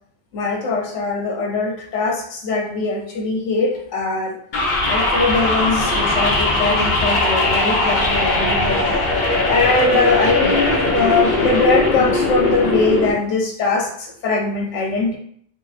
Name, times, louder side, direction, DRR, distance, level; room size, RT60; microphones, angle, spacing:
voice 1, 0.3-4.4 4.9-8.8 9.5-15.2, left 3 dB, 80° left, 1 dB, 1.0 m, -21 dB
sound 1, 4.5-13.1, left 2 dB, 50° left, 0.7 m, -19 dB
3.3 x 2.8 x 2.4 m, 0.63 s
omnidirectional pair, 1.2 m